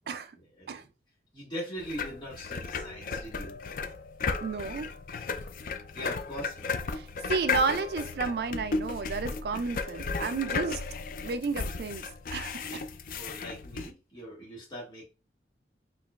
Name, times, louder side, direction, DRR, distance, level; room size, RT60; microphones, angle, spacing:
voice 1, 1.3-3.6 5.9-6.7 9.5-10.0 13.1-15.0, equal, 25° left, 1.7 m, -41 dB
sound 1, 1.8-13.9, left 4 dB, 50° left, 0.4 m, -35 dB
voice 2, 4.4-4.9 6.9-10.8 11.2-12.9, right 4 dB, 60° right, 0.3 m, -32 dB
4.5 x 2.9 x 2.3 m
head